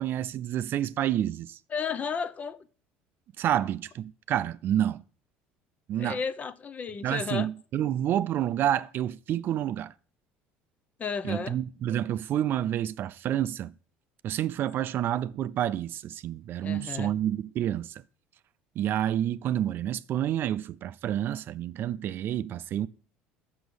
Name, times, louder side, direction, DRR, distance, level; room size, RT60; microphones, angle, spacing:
voice 1, 0.0-1.6 3.4-5.0 5.9-6.2 7.0-9.9 11.2-13.7 14.2-18.0 18.8-22.9, right 11 dB, 55° right, 0.4 m, -29 dB
voice 2, 1.7-2.6 6.0-7.5 11.0-11.6 16.6-17.1, left 6 dB, 35° left, 0.7 m, -33 dB
6.2 x 6.2 x 6.9 m
supercardioid pair, 85°, 4 cm